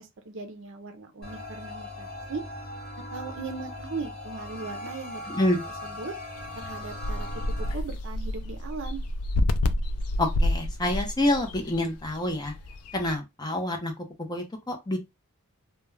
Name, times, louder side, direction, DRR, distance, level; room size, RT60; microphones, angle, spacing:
voice 1, 0.0-2.4 3.1-5.2 5.8-6.1 6.5-9.0, right 4 dB, 60° right, 0.5 m, -38 dB
sound 1, 1.2-7.7, left 1 dB, 45° left, 0.9 m, -39 dB
voice 2, 5.3-5.7 10.2-12.5 12.9-13.9 14.3-15.0, left 1 dB, 20° left, 0.5 m, -27 dB
sound 2, 6.4-13.2, left 1 dB, 85° left, 0.3 m, -29 dB
2.3 x 2.1 x 3.1 m
head